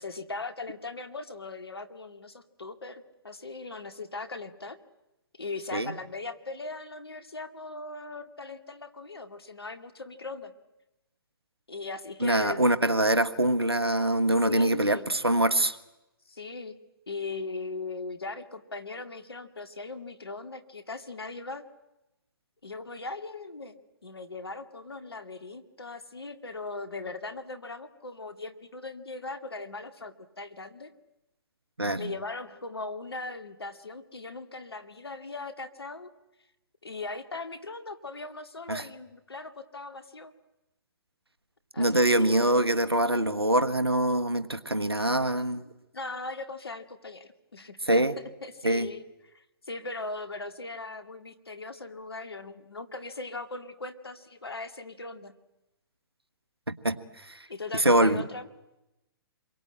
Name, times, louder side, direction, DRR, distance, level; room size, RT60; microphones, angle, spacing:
voice 1, 0.0-4.8 5.4-10.5 11.7-12.8 14.4-15.0 16.3-16.8 17.1-21.6 22.6-23.8 24.0-30.9 31.9-36.1 36.8-40.3 41.7-42.7 45.9-48.0 48.4-49.0 49.3-55.4 57.5-58.5, left 3 dB, 80° left, 9 dB, 2.1 m, -39 dB
voice 2, 12.2-15.8 31.8-32.1 38.7-38.8 41.8-45.6 47.8-48.1 48.6-48.9 56.7-57.0 57.3-57.4 57.7-58.2, right 1 dB, 90° right, 11 dB, 1.4 m, -24 dB
27.0 x 23.0 x 8.9 m, 0.95 s
figure-of-eight pair, 120°, 13 cm